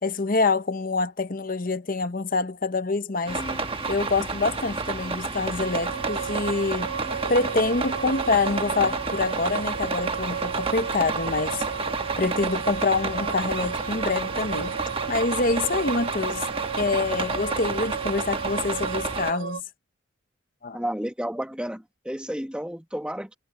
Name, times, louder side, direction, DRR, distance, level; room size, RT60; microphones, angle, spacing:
voice 1, 0.0-3.4 3.9-6.9 7.3-11.6 12.2-14.7 15.1-16.5 16.8-19.6 20.6-20.8, left 3 dB, 45° left, 0.9 m, -26 dB
Bowed string instrument, 3.2-9.2, left 1 dB, 20° left, 4.8 m, -44 dB
sound 1, 3.3-19.3, right 4 dB, 25° right, 1.2 m, -30 dB
sound 2, 5.6-19.6, right 7 dB, 75° right, 3.0 m, -34 dB
voice 2, 20.7-23.4, equal, 5° right, 1.2 m, -31 dB
head